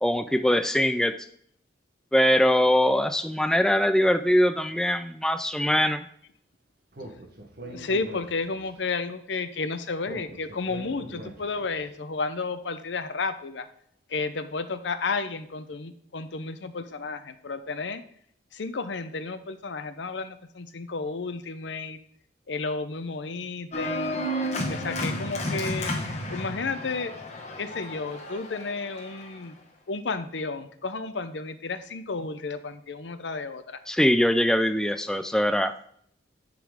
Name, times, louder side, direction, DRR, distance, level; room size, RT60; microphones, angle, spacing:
voice 1, 0.0-1.1 2.1-6.0 33.9-35.7, equal, 5° left, 9 dB, 0.3 m, -22 dB
Speech, 6.9-8.8 10.0-11.8, right 1 dB, 55° right, 1.4 m, -42 dB
voice 2, 7.6-13.7 14.1-18.0 18.5-22.0 22.5-24.3 24.7-25.9 26.3-27.1 27.6-29.6 29.9-33.8, left 4 dB, 75° left, 11 dB, 0.7 m, -32 dB
Organ, 23.7-29.4, left 1 dB, 40° left, 1.1 m, -32 dB
10.0 x 3.9 x 4.9 m, 0.65 s
head